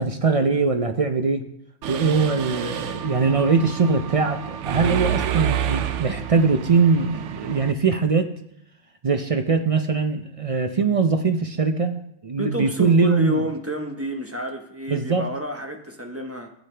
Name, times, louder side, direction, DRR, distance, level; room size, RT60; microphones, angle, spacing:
voice 1, 0.0-1.4 1.9-8.3 9.0-13.4 14.9-15.3, right 4 dB, 45° right, 7 dB, 0.5 m, -21 dB
Mechanisms, 1.8-7.7, right 9 dB, 90° right, 1.0 m, -29 dB
voice 2, 4.8-5.1 12.4-16.5, equal, 15° right, 3 dB, 0.8 m, -30 dB
14.0 x 8.2 x 3.3 m, 0.76 s
omnidirectional pair, 1.2 m